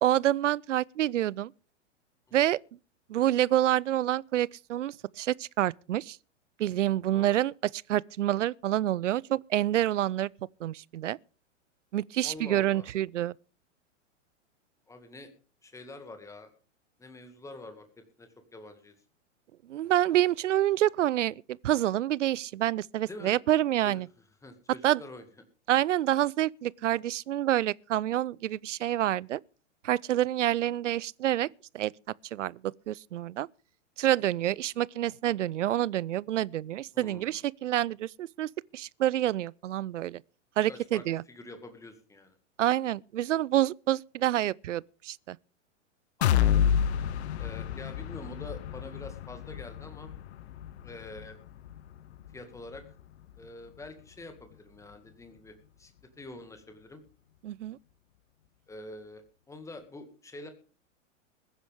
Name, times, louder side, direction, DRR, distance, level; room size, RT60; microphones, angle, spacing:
voice 1, 0.0-1.5 2.3-2.6 3.1-6.2 6.6-10.3 10.6-11.2 11.9-13.3 19.7-24.1 24.8-25.0 25.7-29.4 29.8-31.5 31.7-31.9 32.3-33.5 34.0-40.2 40.6-41.2 42.6-45.4 57.4-57.8, right 13 dB, 70° right, 0.5 m, -27 dB
voice 2, 7.1-7.4 12.2-12.9 14.9-15.3 15.6-16.5 17.0-17.9 18.2-18.9 23.1-23.3 23.8-24.0 24.4-25.2 36.9-37.4 40.7-42.3 46.2-46.6 47.4-50.1 50.8-51.4 52.3-52.8 53.4-55.9 56.2-57.0 58.7-60.5, left 2 dB, 10° left, 2.0 m, -46 dB
sound 1, 46.2-54.0 54.4-54.5 54.9-55.0, left 9 dB, 60° left, 0.8 m, -30 dB
21.0 x 10.0 x 3.5 m
figure-of-eight pair, 100°, 38 cm